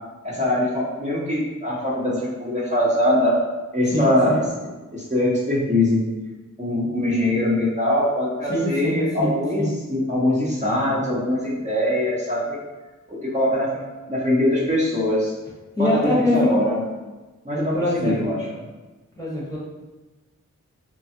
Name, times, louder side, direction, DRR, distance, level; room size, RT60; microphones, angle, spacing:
voice 1, 0.2-3.4 3.7-4.4 4.9-6.0 6.6-9.6 9.9-12.6 13.1-13.8 14.1-15.3 15.8-16.8 17.4-18.4, left 1 dB, 20° right, -7 dB, 0.8 m, -22 dB
voice 2, 3.9-4.4 8.5-9.7 15.8-16.6 17.7-18.2 19.2-19.6, left 1 dB, 10° left, -7 dB, 0.9 m, -23 dB
3.2 x 2.2 x 2.8 m, 1.2 s
wide cardioid pair, 55°, 32 cm